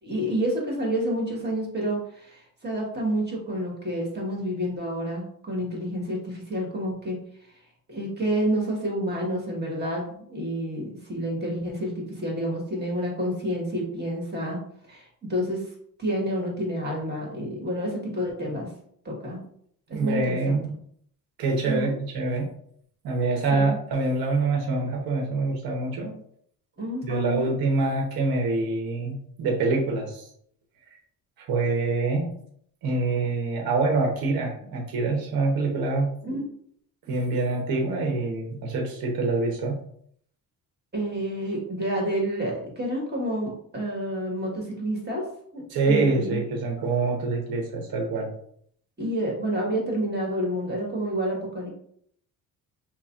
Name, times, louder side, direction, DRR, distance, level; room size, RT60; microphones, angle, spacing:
voice 1, 0.0-7.2 7.9-14.6 14.9-15.7 16.0-18.7 19.0-19.4 19.9-20.6 21.6-22.0 23.5-23.8 26.8-27.5 36.2-36.4 40.9-45.3 45.5-46.4 49.0-51.7, equal, 25° right, -1 dB, 1.5 m, -29 dB
voice 2, 19.9-20.7 21.4-22.5 23.0-26.1 27.0-30.2 31.4-32.3 32.8-36.4 37.1-39.8 45.7-48.3, right 3 dB, 65° right, 1 dB, 1.0 m, -25 dB
5.7 x 2.2 x 2.5 m, 0.65 s
cardioid pair, 85°, 38 cm